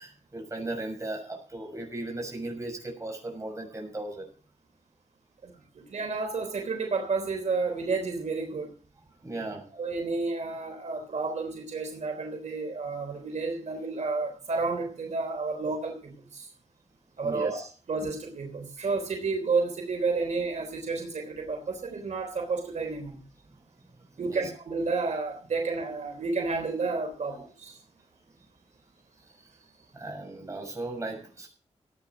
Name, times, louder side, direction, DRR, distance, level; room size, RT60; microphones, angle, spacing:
voice 1, 0.0-4.3 9.2-9.6 17.2-17.7 24.1-24.4 29.9-31.5, right 2 dB, 25° right, 1 dB, 6.4 m, -37 dB
voice 2, 5.4-8.7 9.7-16.5 17.2-17.6 17.9-23.2 24.2-27.8, right 4 dB, 80° right, 4 dB, 3.5 m, -31 dB
15.5 x 9.4 x 6.0 m, 0.41 s
wide cardioid pair, 145°, 12 cm